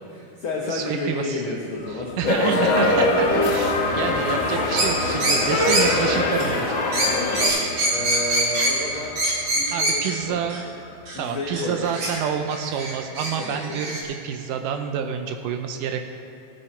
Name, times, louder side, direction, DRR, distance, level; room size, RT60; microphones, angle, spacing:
voice 1, 0.1-2.8 7.1-7.4 7.9-9.2 9.5-10.5 11.1-11.9 13.4-13.8, left 2 dB, 80° left, -3 dB, 1.1 m, -31 dB
voice 2, 0.6-1.4 1.9-6.8 9.7-10.8 11.2-16.1, right 8 dB, 80° right, 6 dB, 2.0 m, -28 dB
sound 1, 1.8-12.9, left 3 dB, 65° left, 1.6 m, -34 dB
sound 2, 2.2-7.5, left 2 dB, 50° left, 1.6 m, -22 dB
sound 3, 4.8-10.1 10.5-10.6 11.1-11.2 11.5-12.2 12.5-14.0, right 1 dB, 50° right, 2.6 m, -24 dB
17.5 x 7.8 x 4.3 m, 2.7 s
omnidirectional pair, 4.1 m